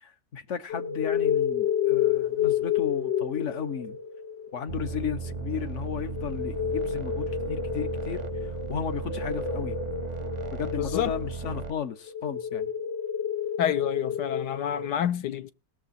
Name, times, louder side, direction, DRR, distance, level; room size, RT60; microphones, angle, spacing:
voice 1, 0.0-4.0 4.5-8.2 8.7-9.8 10.5-12.7, left 7 dB, 50° left, 1.0 m, -34 dB
sound 1, 0.7-14.9, left 8 dB, 90° left, 2.2 m, -30 dB
sound 2, 4.7-11.7, right 5 dB, 35° right, 0.6 m, -36 dB
voice 2, 10.8-11.1 13.6-15.5, left 10 dB, 70° left, 1.3 m, -28 dB
19.5 x 6.8 x 4.2 m
omnidirectional pair, 2.0 m